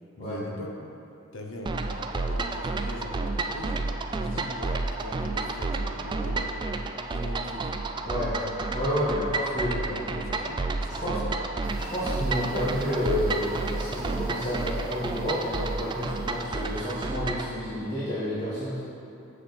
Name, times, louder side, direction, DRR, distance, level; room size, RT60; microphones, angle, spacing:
voice 1, 0.2-0.9 1.3-3.8 4.1-6.6 7.1-7.7 8.9-11.3, left 1 dB, 70° left, 1 dB, 0.9 m, -40 dB
sound 1, 1.7-17.5, right 3 dB, 20° right, 0.3 m, -31 dB
voice 2, 8.0-8.3 8.7-9.7 11.0-11.2 11.9-13.4 13.7-18.8, left 1 dB, 35° left, -10 dB, 1.5 m, -30 dB
sound 2, 11.6-17.4, right 1 dB, 70° right, 1.4 m, -46 dB
7.6 x 6.5 x 4.0 m, 2.7 s
head